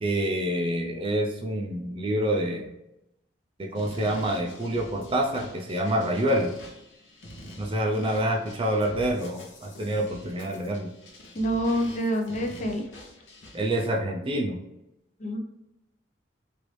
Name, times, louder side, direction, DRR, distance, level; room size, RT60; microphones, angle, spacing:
voice 1, 0.0-2.7 3.6-6.5 7.6-10.9 13.5-14.6, right 1 dB, 30° right, 1 dB, 0.4 m, -27 dB
sound 1, 3.8-13.9, left 1 dB, 85° left, 0.8 m, -46 dB
voice 2, 11.3-12.8 15.2-15.4, equal, 40° left, 3 dB, 0.5 m, -27 dB
3.2 x 2.5 x 3.1 m, 0.89 s
head